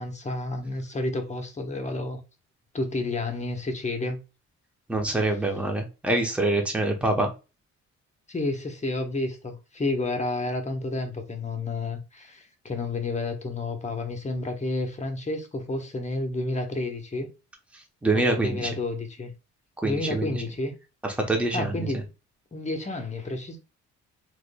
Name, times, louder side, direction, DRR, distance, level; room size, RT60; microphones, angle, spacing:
voice 1, 0.0-2.2 2.7-4.2 8.3-17.3 18.1-19.3 19.8-20.7 21.5-22.0 22.5-23.6, left 2 dB, 25° left, 0.9 m, -30 dB
voice 2, 4.9-7.3 17.7-18.7 19.8-20.4 21.0-21.9, right 2 dB, 5° right, 0.9 m, -25 dB
3.7 x 3.0 x 2.2 m
cardioid pair, 90°, 30 cm